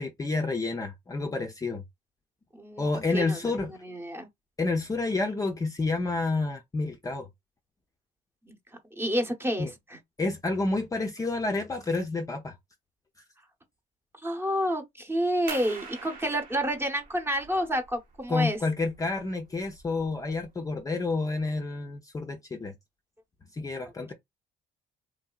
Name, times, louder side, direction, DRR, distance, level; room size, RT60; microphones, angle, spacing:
voice 1, 0.0-1.8 2.8-3.7 4.6-7.3 9.6-9.7 10.2-12.5 18.3-22.7 23.5-24.1, left 3 dB, 20° left, 0.5 m, -29 dB
voice 2, 2.5-2.9 3.1-3.4 3.8-4.3 8.4-8.6 9.0-10.0 14.2-18.6, equal, 15° right, 0.9 m, -29 dB
sound 1, 15.5-20.8, right 5 dB, 60° right, 1.0 m, -46 dB
3.2 x 2.6 x 2.3 m
cardioid pair, 110°, 17 cm